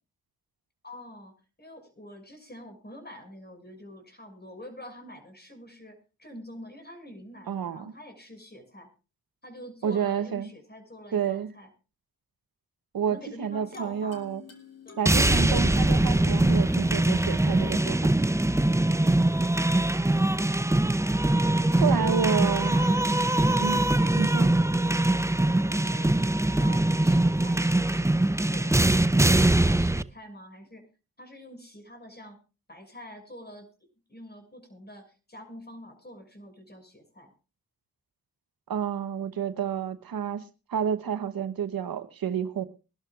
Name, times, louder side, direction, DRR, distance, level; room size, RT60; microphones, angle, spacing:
voice 1, 0.8-1.3 1.6-8.9 9.4-11.7 13.1-14.3 14.8-15.5 19.0-19.3 21.5-23.0 23.3-23.6 25.5-30.9 31.2-32.4 32.7-33.7 34.1-37.3, equal, 30° left, 5 dB, 6.2 m, -46 dB
voice 2, 7.5-7.9 9.8-10.5 11.1-11.5 12.9-14.4 15.0-18.1 21.8-22.7 23.6-23.8 24.2-24.5 38.7-42.6, right 8 dB, 80° right, 11 dB, 1.0 m, -29 dB
sound 1, 13.1-20.1, left 4 dB, 45° left, 3.2 m, -49 dB
sound 2, 15.1-30.0, right 1 dB, 10° right, 0.6 m, -22 dB
23.5 x 12.0 x 2.4 m, 0.32 s
cardioid pair, 40°, 35 cm